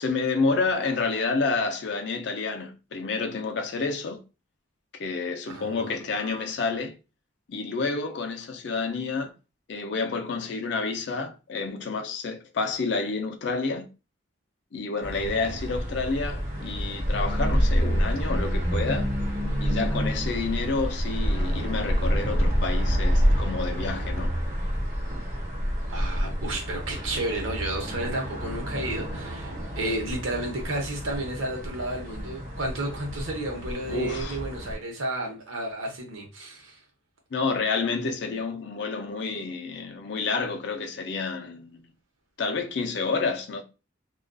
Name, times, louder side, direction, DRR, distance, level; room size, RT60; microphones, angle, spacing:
voice 1, 0.0-4.2 4.9-7.0 7.5-9.3 9.7-13.9 14.7-19.1 19.6-24.3 33.9-34.4 37.3-41.8 42.4-43.6, left 4 dB, 60° left, 0.4 m, -29 dB
voice 2, 5.5-6.5 25.9-36.8, right 1 dB, 85° right, 0.8 m, -32 dB
sound 1, 15.0-34.8, equal, 45° right, 0.9 m, -28 dB
2.5 x 2.3 x 2.2 m
head